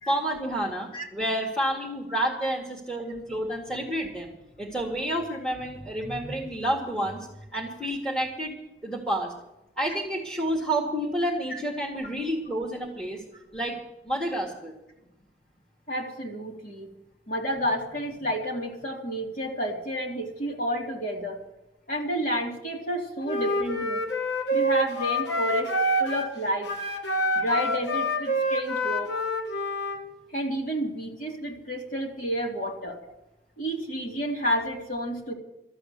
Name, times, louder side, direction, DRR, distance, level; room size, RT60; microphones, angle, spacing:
voice 1, 0.1-8.5 8.8-9.3 9.8-13.2 13.5-13.8 14.1-14.7, right 1 dB, 5° left, -2 dB, 2.0 m, -29 dB
voice 2, 15.9-16.9 17.3-21.4 21.9-24.0 24.5-25.7 26.0-26.7 27.3-29.1 30.3-33.0 33.6-35.3, equal, 50° left, -1 dB, 2.8 m, -30 dB
Wind instrument woodwind instrument, 23.2-26.3 26.6-30.0, equal, 85° left, 2.1 m, -27 dB
13.5 x 7.8 x 9.8 m, 0.94 s
head